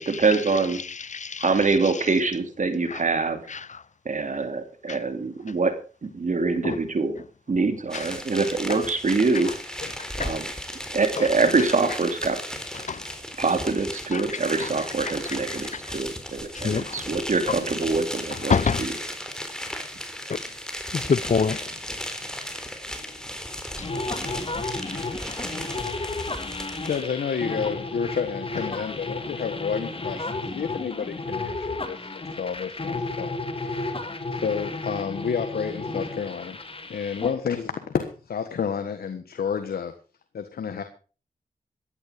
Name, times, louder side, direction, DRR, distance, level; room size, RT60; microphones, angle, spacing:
voice 1, 0.0-0.8 1.4-3.4 4.0-7.1 7.5-9.5 10.2-10.5 10.9-12.4 13.4-18.9, right 3 dB, 55° right, 2.7 m, -24 dB
voice 2, 0.8-1.5 1.8-1.9 2.9-3.0 3.5-3.8 4.9-5.0 6.6-6.8 7.9-8.1 8.7-8.8 10.0-10.4 11.2-11.3 12.9-13.1 14.1-14.7 15.3-15.8 16.5-17.0 18.5-18.9 20.3-20.4 20.9-21.6 23.8-23.9, left 5 dB, 50° left, 0.8 m, -28 dB
sound 1, 7.9-27.0, equal, 5° left, 3.9 m, -35 dB
sound 2, 23.8-37.3, left 3 dB, 35° left, 2.5 m, -33 dB
voice 3, 26.8-36.6 36.9-39.9 40.3-40.8, left 6 dB, 90° left, 1.4 m, -30 dB
16.0 x 11.5 x 5.1 m
cardioid pair, 55°, 15 cm